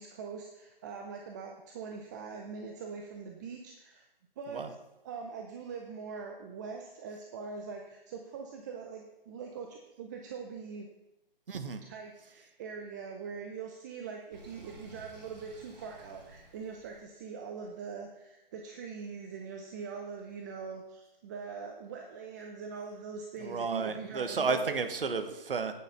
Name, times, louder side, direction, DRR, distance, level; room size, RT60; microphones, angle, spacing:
voice 1, 0.0-4.0 4.4-4.6 5.0-10.9 11.8-24.8, right 5 dB, 20° right, 2 dB, 0.5 m, -42 dB
voice 2, 11.5-11.8 23.4-25.8, right 4 dB, 70° right, 8 dB, 1.2 m, -32 dB
Sink (filling or washing), 14.3-17.0, right 1 dB, 45° right, 2.5 m, -53 dB
9.1 x 6.5 x 5.6 m, 0.92 s
figure-of-eight pair, 140°, 29 cm